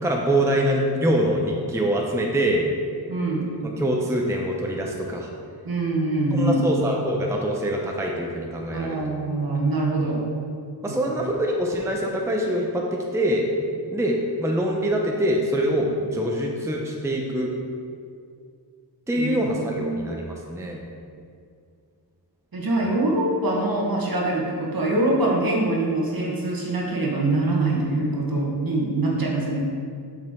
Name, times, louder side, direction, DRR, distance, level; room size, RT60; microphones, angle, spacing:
voice 1, 0.0-2.7 3.6-5.3 6.3-9.0 10.8-13.5 13.9-17.5 19.1-20.8, right 1 dB, 5° right, 0 dB, 0.6 m, -24 dB
voice 2, 3.1-3.5 5.6-6.7 8.7-10.2 10.9-11.1 19.2-20.1 22.5-29.6, right 2 dB, 55° right, -2 dB, 1.4 m, -24 dB
7.6 x 4.8 x 3.6 m, 2.3 s
wide cardioid pair, 95°, 42 cm